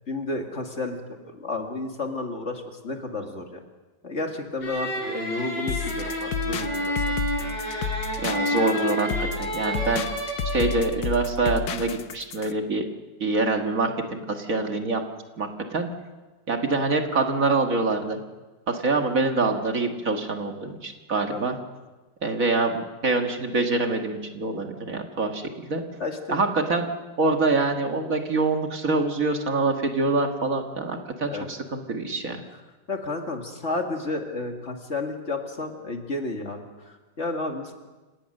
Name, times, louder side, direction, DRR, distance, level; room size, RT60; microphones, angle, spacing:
voice 1, 0.1-1.0 1.3-3.6 4.0-7.2 21.3-21.4 26.0-26.4 31.3-31.5 32.3-32.6 32.9-37.7, left 2 dB, 40° left, 3 dB, 2.4 m, -32 dB
sound 1, 4.6-10.8, equal, 85° left, 5.9 m, -29 dB
sound 2, 5.7-12.5, left 6 dB, 65° left, 1.4 m, -31 dB
voice 2, 8.2-10.1 10.5-12.8 13.2-15.0 15.4-15.9 16.5-18.2 18.7-21.6 22.2-25.8 26.3-26.9 27.2-32.4, right 3 dB, 50° right, 4 dB, 2.0 m, -25 dB
28.5 x 17.5 x 6.6 m, 1.2 s
omnidirectional pair, 1.9 m